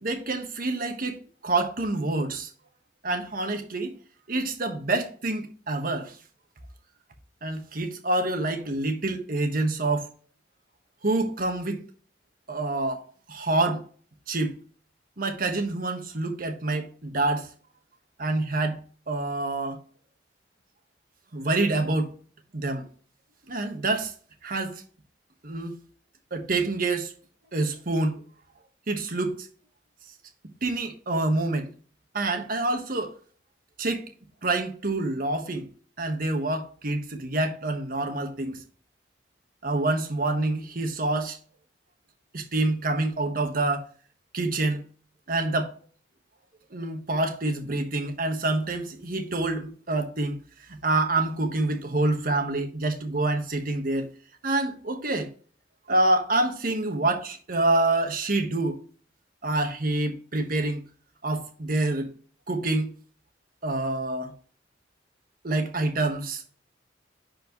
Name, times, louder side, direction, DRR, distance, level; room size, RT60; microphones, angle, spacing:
voice 1, 0.0-2.5 3.0-3.9 4.3-6.2 7.4-10.1 11.0-11.8 12.5-13.0 13.3-13.8 14.3-14.6 15.2-17.5 18.2-19.8 21.3-22.1 22.5-22.8 23.5-24.1 24.4-24.8 25.4-25.7 26.3-27.1 27.5-28.2 28.9-29.5 30.6-31.7 32.1-33.2 33.8-34.1 34.4-35.7 36.0-38.6 39.6-41.4 42.3-43.9 44.3-44.8 45.3-45.7 46.7-50.4 50.7-54.1 54.4-55.3 55.9-58.8 59.4-60.8 61.2-62.1 62.5-62.9 63.6-64.3 65.4-66.5, right 2 dB, 50° right, 1.3 m, -27 dB
10.5 x 4.4 x 3.0 m
head